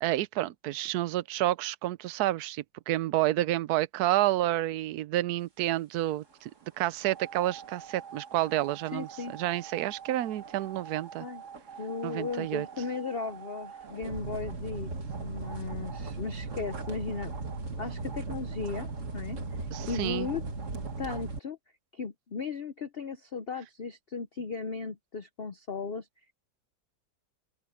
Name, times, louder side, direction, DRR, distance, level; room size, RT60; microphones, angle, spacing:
voice 1, 0.0-6.5 6.8-11.3 12.0-12.7 19.7-20.3, right 15 dB, 70° right, 1.0 m, -29 dB
sound 1, 7.0-21.4, right 4 dB, 40° right, 2.1 m, -39 dB
voice 2, 8.9-9.3 11.2-11.4 11.8-14.9 15.2-17.3 17.8-19.4 19.9-20.4 21.0-21.6 21.9-26.1, left 4 dB, 65° left, 0.6 m, -36 dB
open air
omnidirectional pair, 2.0 m